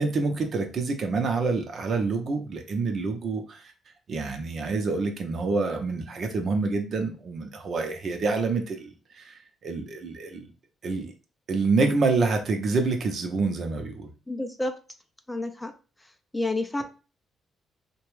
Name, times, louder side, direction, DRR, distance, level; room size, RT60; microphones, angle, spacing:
voice 1, 0.0-3.7 4.1-10.5 10.8-11.1 11.5-14.1, right 3 dB, 55° right, 4 dB, 0.7 m, -27 dB
voice 2, 14.3-14.8 15.3-15.7 16.3-16.8, left 2 dB, 10° left, 6 dB, 0.4 m, -29 dB
2.9 x 2.2 x 3.1 m, 0.34 s
cardioid pair, 90°, 0 cm